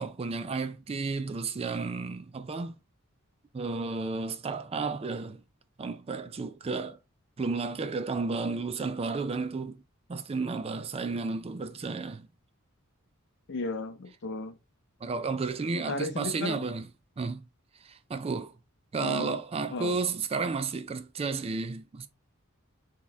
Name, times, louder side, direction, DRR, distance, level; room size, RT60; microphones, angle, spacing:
voice 1, 0.0-2.7 3.5-5.4 5.8-7.0 7.4-9.8 10.1-12.3 15.0-16.9 17.2-17.5 17.8-18.5 18.9-22.1, right 4 dB, 30° right, 0.4 m, -32 dB
voice 2, 13.5-14.6 15.8-16.6 19.0-19.4 19.7-20.0, left 3 dB, 55° left, 0.6 m, -35 dB
4.2 x 2.9 x 3.3 m
head